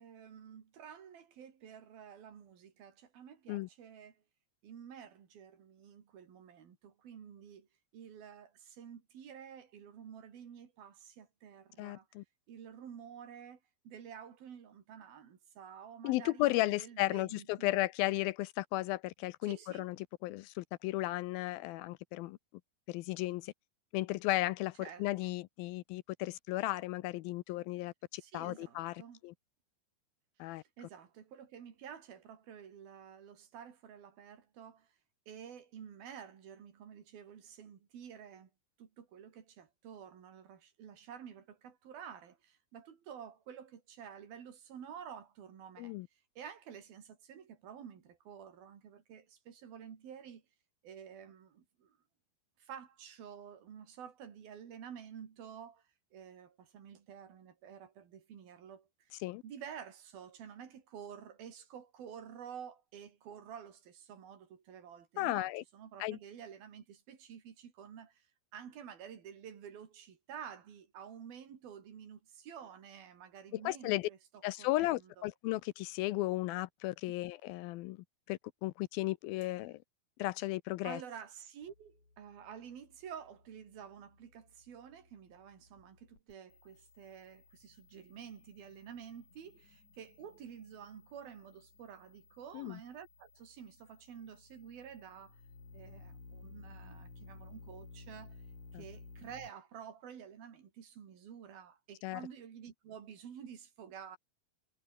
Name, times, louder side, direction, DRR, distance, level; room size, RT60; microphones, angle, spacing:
voice 1, 0.0-4.2 4.6-7.7 7.9-12.1 12.5-13.6 13.8-17.8 19.4-19.9 24.8-25.3 28.2-29.2 30.5-34.9 35.3-38.5 38.8-46.0 46.4-50.4 50.8-52.0 52.6-55.8 56.1-59.1 59.4-68.3 68.5-75.3 77.1-77.2 80.8-95.4 95.7-98.4 98.7-104.2, right 8 dB, 70° right, 4.8 m, -50 dB
voice 2, 11.8-12.2 16.0-20.0 20.2-22.4 22.9-23.5 23.9-29.3 30.4-30.6 45.8-46.1 59.2-59.4 65.2-65.6 66.0-66.2 73.5-74.1 74.4-79.8 80.2-81.0 92.5-92.8 98.7-98.8 102.0-102.2, left 18 dB, 80° left, 2.3 m, -35 dB
sound 1, 81.6-99.5, left 3 dB, 45° left, 9.5 m, -57 dB
omnidirectional pair, 4.5 m